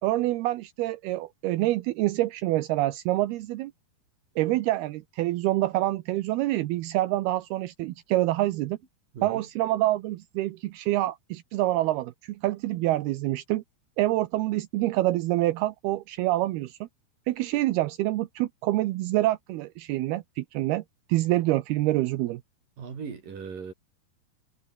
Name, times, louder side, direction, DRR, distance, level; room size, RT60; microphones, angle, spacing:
voice 1, 0.0-3.7 4.4-8.8 9.2-13.6 14.0-16.8 17.3-20.8 21.1-22.4, right 16 dB, 80° right, 2.7 m, -26 dB
voice 2, 22.8-23.7, right 6 dB, 55° right, 5.5 m, -38 dB
omnidirectional pair, 4.7 m